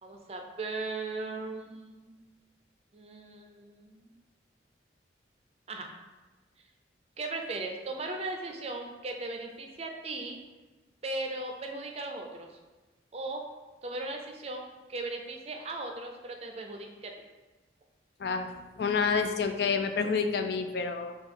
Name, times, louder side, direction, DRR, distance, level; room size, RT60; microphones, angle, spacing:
voice 1, 0.0-2.1 2.9-4.1 5.7-5.9 7.2-10.4 11.0-12.6 13.1-13.4 13.8-17.1, right 2 dB, 35° right, 3 dB, 0.5 m, -37 dB
voice 2, 18.2-21.2, left 5 dB, 60° left, 7 dB, 0.3 m, -29 dB
5.9 x 2.4 x 3.7 m, 1.2 s
head